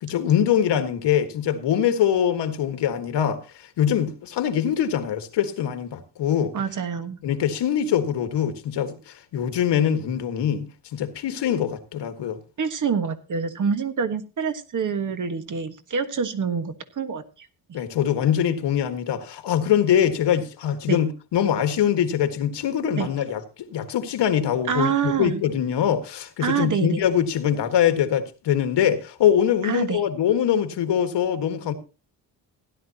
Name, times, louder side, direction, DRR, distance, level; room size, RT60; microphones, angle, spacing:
voice 1, 0.0-6.5 7.2-12.4 17.7-31.7, left 9 dB, 85° left, 1.7 m, -23 dB
voice 2, 6.5-7.2 12.6-17.2 17.7-17.8 20.9-21.0 23.0-23.1 24.7-25.4 26.4-27.0 29.6-30.0, right 6 dB, 45° right, 1.5 m, -26 dB
16.5 x 11.0 x 2.9 m
cardioid pair, 120°, 41 cm